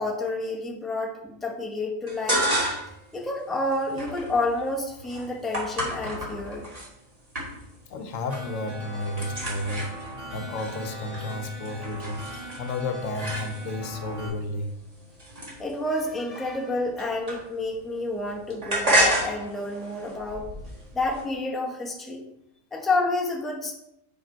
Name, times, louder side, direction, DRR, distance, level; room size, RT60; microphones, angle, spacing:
voice 1, 0.0-2.4 3.1-6.6 15.6-20.5 20.9-22.2 22.7-23.7, left 2 dB, ahead, -2 dB, 0.8 m, -29 dB
sound 1, 2.1-3.0 3.4-6.9 7.3-8.6 8.8-13.9 14.5-17.8 18.1-21.2, right 1 dB, 30° right, 1.6 m, -30 dB
voice 2, 7.9-9.9 10.3-12.2 12.6-14.7, left 2 dB, 80° left, 6 dB, 1.0 m, -32 dB
sound 2, 8.3-14.3, right 1 dB, 50° right, 2.2 m, -40 dB
4.9 x 4.8 x 4.4 m, 0.81 s
omnidirectional pair, 1.3 m